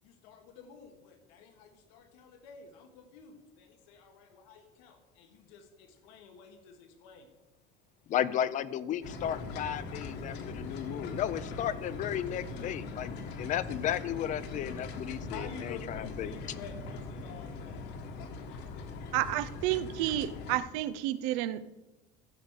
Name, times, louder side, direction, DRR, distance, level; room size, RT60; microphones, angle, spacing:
voice 1, 0.0-7.3 15.0-19.2, left 6 dB, 85° left, 5 dB, 1.7 m, -50 dB
voice 2, 8.1-16.3, left 10 dB, 35° left, 16 dB, 0.6 m, -34 dB
sound 1, 9.0-20.6, left 3 dB, 55° left, 1.4 m, -41 dB
voice 3, 19.1-21.7, right 13 dB, 80° right, 16 dB, 0.6 m, -31 dB
15.0 x 5.1 x 6.5 m, 1.1 s
cardioid pair, 150°, 21 cm